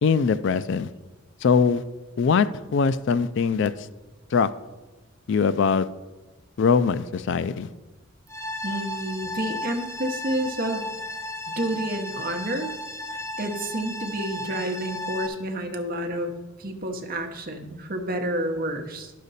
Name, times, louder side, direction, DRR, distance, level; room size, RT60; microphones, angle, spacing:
voice 1, 0.0-0.9 1.4-1.8 2.2-2.5 2.7-3.7 4.3-4.5 5.3-5.9 6.6-7.7, left 5 dB, 55° left, 14 dB, 0.3 m, -21 dB
sound 1, 8.3-15.3, left 1 dB, 15° left, 0.6 m, -34 dB
voice 2, 8.6-10.9 11.5-12.7 13.1-16.3 16.6-19.1, right 1 dB, 45° right, 5 dB, 0.9 m, -29 dB
11.0 x 6.6 x 4.1 m, 1.2 s
head